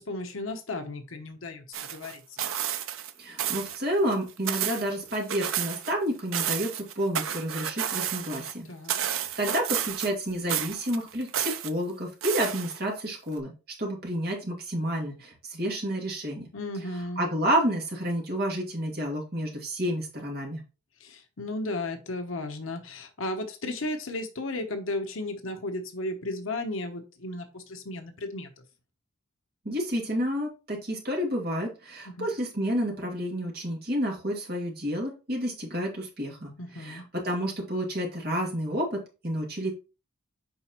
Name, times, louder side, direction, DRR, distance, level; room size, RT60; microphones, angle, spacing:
voice 1, 0.0-2.5 8.7-8.9 16.5-17.2 21.0-28.5 32.2-32.3 36.6-37.0, left 2 dB, 85° left, 6 dB, 1.0 m, -34 dB
sound 1, 1.7-3.1 3.4-3.8 4.1-5.9 6.2-8.5 8.9-10.2 10.5-11.7 12.2-13.0 13.4-13.5, right 10 dB, 90° right, 0.6 m, -31 dB
voice 2, 3.2-8.7 9.0-13.5 13.8-16.5 17.2-20.6 29.6-39.7, equal, 50° right, -1 dB, 2.4 m, -30 dB
7.7 x 5.0 x 3.0 m, 0.32 s
head